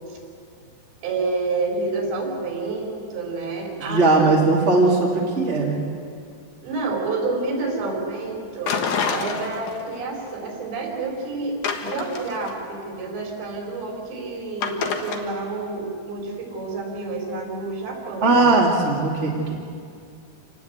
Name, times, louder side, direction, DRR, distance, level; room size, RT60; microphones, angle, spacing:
voice 1, 1.0-4.3 6.6-8.8 9.1-18.5, right 3 dB, 75° right, 0 dB, 6.3 m, -29 dB
voice 2, 3.8-5.8 18.2-19.6, right 3 dB, 20° right, -3 dB, 2.1 m, -19 dB
sound 1, 8.7-10.0 10.3-10.4 11.6-12.6 14.6-15.2, left 5 dB, 55° left, 2.4 m, -26 dB
28.0 x 20.0 x 8.2 m, 2.4 s
omnidirectional pair, 5.1 m